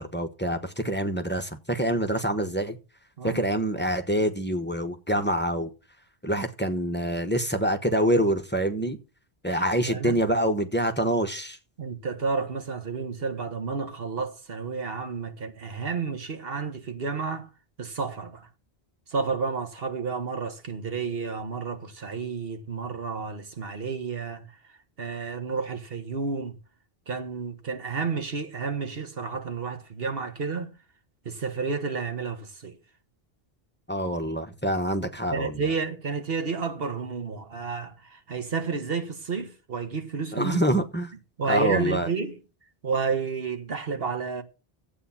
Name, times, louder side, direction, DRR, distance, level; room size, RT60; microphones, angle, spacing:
voice 1, 0.0-2.8 3.2-5.7 6.2-9.0 9.4-11.6 33.9-35.6 40.3-41.1 41.5-42.1, equal, 10° left, 1.1 m, -26 dB
voice 2, 9.5-10.2 11.8-17.5 17.8-18.5 19.1-24.5 25.0-26.5 27.1-30.7 31.2-32.7 35.3-40.6 41.4-42.4 42.8-44.4, right 5 dB, 70° right, 1.6 m, -31 dB
12.0 x 8.4 x 5.8 m
omnidirectional pair, 1.0 m